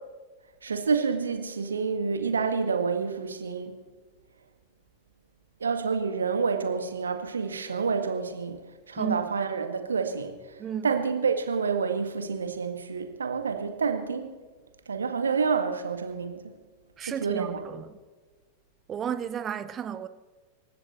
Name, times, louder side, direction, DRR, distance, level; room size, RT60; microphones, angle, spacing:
voice 1, 0.6-3.7 5.6-8.6 8.9-10.4 10.8-14.4 14.9-16.4 17.0-17.7, right 5 dB, 70° right, 1.8 m, -28 dB
voice 2, 9.0-9.3 10.6-10.9 17.0-17.9 18.9-20.1, right 8 dB, 25° right, 0.9 m, -33 dB
27.5 x 15.0 x 3.2 m
figure-of-eight pair, 90°, 0 cm